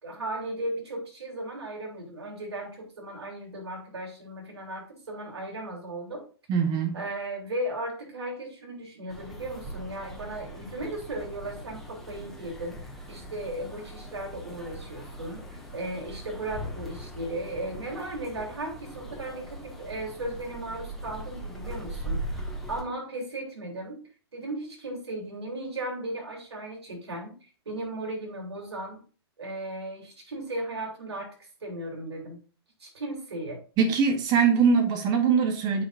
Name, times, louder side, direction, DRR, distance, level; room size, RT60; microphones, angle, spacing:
voice 1, 0.0-6.2 6.9-12.8 13.1-24.0 24.3-29.0 29.4-32.4 32.8-33.6, right 1 dB, 80° right, 1 dB, 3.4 m, -36 dB
voice 2, 6.5-7.0 33.8-35.8, right 6 dB, 30° right, 7 dB, 1.1 m, -22 dB
sound 1, 9.1-22.8, right 1 dB, ahead, 1.6 m, -40 dB
8.8 x 5.8 x 2.6 m, 0.37 s
hypercardioid pair, 125°, 14 cm